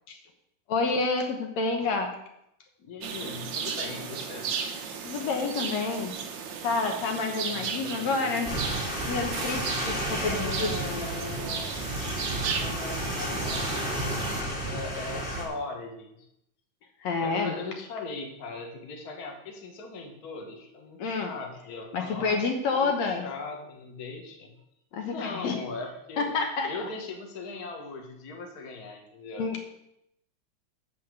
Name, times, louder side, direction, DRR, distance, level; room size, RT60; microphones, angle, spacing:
voice 1, 0.7-2.2 5.1-6.1 6.6-8.5 9.1-10.7 17.0-17.5 21.0-21.3 21.9-23.3 24.9-25.6 26.2-26.7 29.4-29.7, left 4 dB, 70° left, 4 dB, 2.3 m, -28 dB
voice 2, 2.8-4.5 7.5-8.3 10.2-11.8 12.6-16.2 17.2-22.4 22.7-24.5 25.1-26.3 26.7-29.5, left 3 dB, 40° left, 2 dB, 1.7 m, -39 dB
sound 1, 3.0-14.4, right 6 dB, 80° right, 1.0 m, -35 dB
sound 2, 8.5-15.4, equal, 20° left, 2.3 m, -32 dB
12.5 x 4.2 x 8.0 m, 0.80 s
omnidirectional pair, 3.4 m